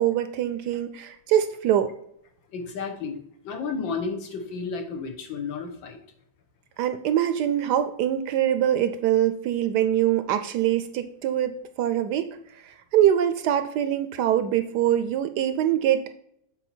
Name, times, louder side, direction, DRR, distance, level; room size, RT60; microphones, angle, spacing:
voice 1, 0.0-1.9 6.8-16.1, right 11 dB, 75° right, 10 dB, 1.0 m, -24 dB
voice 2, 2.5-6.0, left 5 dB, 85° left, 4 dB, 1.8 m, -32 dB
8.0 x 4.1 x 4.3 m, 0.72 s
omnidirectional pair, 2.0 m